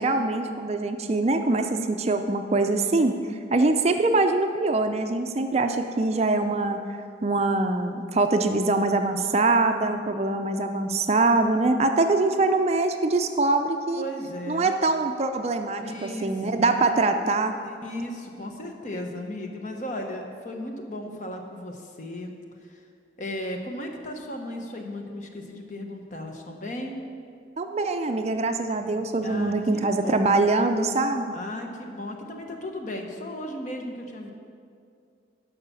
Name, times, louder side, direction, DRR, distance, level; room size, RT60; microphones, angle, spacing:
voice 1, 0.0-6.8 7.2-14.0 14.5-17.6 27.6-31.3, right 2 dB, 35° right, 7 dB, 0.4 m, -23 dB
voice 2, 14.0-14.7 15.8-16.6 17.6-22.3 22.6-22.8 23.2-26.9 29.2-30.3 31.3-34.3, left 1 dB, 40° left, 3 dB, 1.1 m, -35 dB
11.5 x 5.8 x 6.9 m, 2.3 s
head